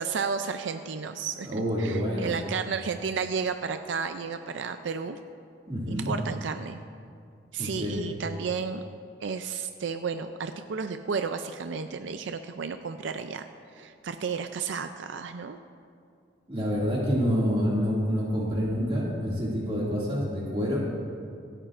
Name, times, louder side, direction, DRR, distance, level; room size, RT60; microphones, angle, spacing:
voice 1, 0.0-5.2 5.9-6.8 7.5-8.8 9.2-13.5 13.8-15.6, right 5 dB, 80° right, 8 dB, 0.4 m, -32 dB
voice 2, 1.4-2.3 5.7-6.1 7.6-8.0 16.5-20.8, equal, 30° right, -5 dB, 2.3 m, -27 dB
26.5 x 9.0 x 2.5 m, 2.3 s
head